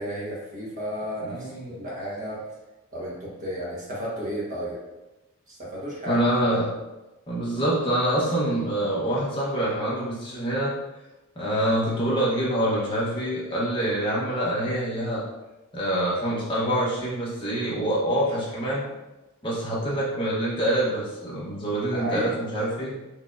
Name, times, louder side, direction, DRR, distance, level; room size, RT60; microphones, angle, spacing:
voice 1, 0.0-2.4 2.9-4.8 5.5-6.5 21.9-22.3, equal, 35° right, -6 dB, 1.3 m, -33 dB
voice 2, 1.3-1.8 6.1-6.7 7.3-10.7 11.4-15.2 15.7-18.8 19.4-22.9, right 1 dB, 20° left, -6 dB, 1.0 m, -25 dB
4.4 x 3.5 x 2.6 m, 1.0 s
head